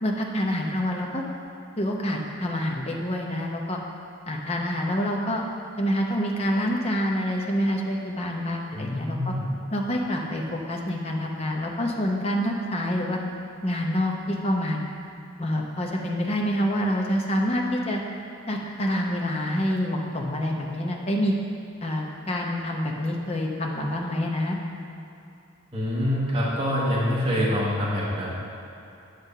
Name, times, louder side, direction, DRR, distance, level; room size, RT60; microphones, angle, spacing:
voice 1, 0.0-1.2 1.8-3.8 4.3-5.4 5.8-9.3 9.7-13.2 13.6-14.8 15.4-18.0 18.5-21.3 21.8-24.6, equal, 30° left, 0 dB, 0.7 m, -27 dB
voice 2, 8.7-9.4 25.7-28.3, equal, 25° right, -7 dB, 1.2 m, -25 dB
9.1 x 3.4 x 6.6 m, 2.7 s
head